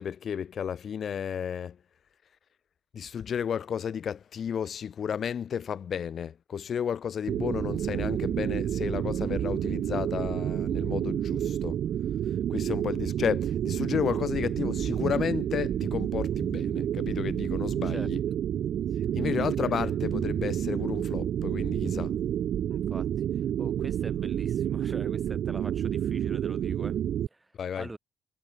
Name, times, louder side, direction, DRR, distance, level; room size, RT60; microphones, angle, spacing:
voice 1, 0.0-1.8 2.9-11.8 12.5-18.2 19.1-22.1 27.5-27.9, left 8 dB, 55° left, 1.6 m, -32 dB
sound 1, 7.3-27.3, right 10 dB, 65° right, 1.0 m, -29 dB
voice 2, 22.7-27.0 27.3-27.5 27.8-28.0, right 2 dB, 20° right, 7.5 m, -43 dB
hypercardioid pair, 45°, 0 cm